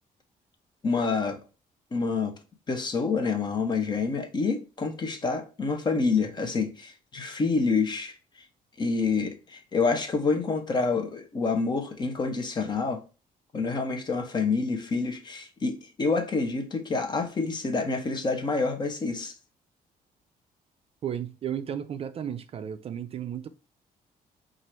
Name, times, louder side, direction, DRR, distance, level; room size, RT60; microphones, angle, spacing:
voice 1, 0.8-1.4 1.9-2.4 2.7-8.1 8.8-13.0 13.5-19.3, left 4 dB, 30° left, 0.8 m, -27 dB
voice 2, 21.0-23.5, right 9 dB, 40° right, 0.4 m, -34 dB
4.6 x 2.5 x 4.3 m
cardioid pair, 155°, 15 cm